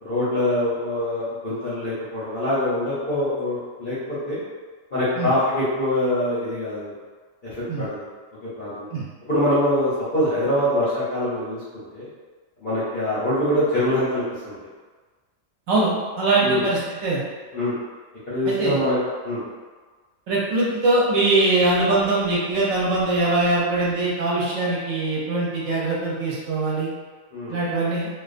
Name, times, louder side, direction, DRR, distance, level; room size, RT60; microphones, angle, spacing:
voice 1, 0.0-4.4 4.9-6.9 7.5-8.0 8.4-8.9 9.3-12.1 12.6-14.6 16.4-16.6 17.5-17.7 18.3-19.0 19.2-19.4 27.3-27.6, left 1 dB, 55° left, -11 dB, 0.6 m, -24 dB
voice 2, 16.2-17.2 18.5-18.8 20.3-26.9 27.5-28.1, right 2 dB, 70° right, -6 dB, 0.9 m, -22 dB
2.3 x 2.2 x 2.4 m, 1.4 s
omnidirectional pair, 1.5 m